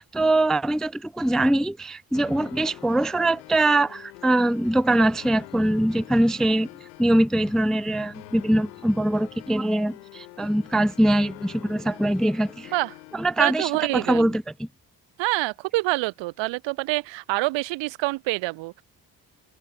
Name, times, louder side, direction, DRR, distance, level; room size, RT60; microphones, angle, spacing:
voice 1, 0.0-12.7 13.1-14.7, right 1 dB, ahead, 0.3 m, -23 dB
sound 1, 2.1-14.2, left 23 dB, 85° left, 1.1 m, -46 dB
voice 2, 13.4-14.3 15.2-18.8, right 21 dB, 70° right, 0.7 m, -26 dB
hypercardioid pair, 40°, 47 cm